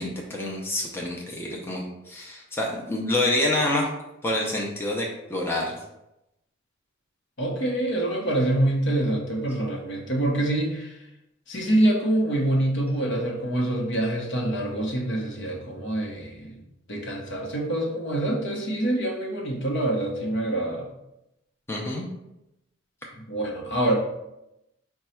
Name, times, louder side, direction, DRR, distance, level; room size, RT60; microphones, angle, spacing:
voice 1, 0.0-3.9 4.2-5.8 21.7-22.0, left 1 dB, 10° left, -2 dB, 0.5 m, -27 dB
voice 2, 7.4-10.9 11.5-16.6 16.9-20.9 23.3-23.9, right 1 dB, 60° left, -1 dB, 0.9 m, -25 dB
5.1 x 2.3 x 4.3 m, 0.90 s
head